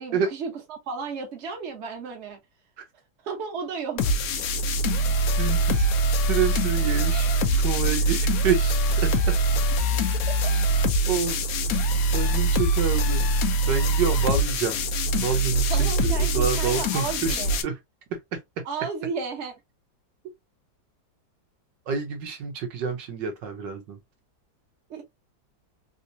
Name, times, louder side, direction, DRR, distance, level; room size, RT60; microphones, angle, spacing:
voice 1, 0.0-2.4 3.2-4.1 10.4-10.5 15.7-17.6 18.6-19.5 24.9-25.0, right 5 dB, 45° right, 1.1 m, -33 dB
sound 1, 4.0-17.6, right 1 dB, 70° left, 0.8 m, -23 dB
voice 2, 5.4-5.9 6.3-7.3 7.6-9.3 11.1-11.4 11.7-11.8 12.1-13.2 13.7-14.8 15.2-17.8 18.1-18.4 21.9-24.0, right 6 dB, 70° right, 1.3 m, -28 dB
3.5 x 2.8 x 2.6 m
omnidirectional pair, 2.1 m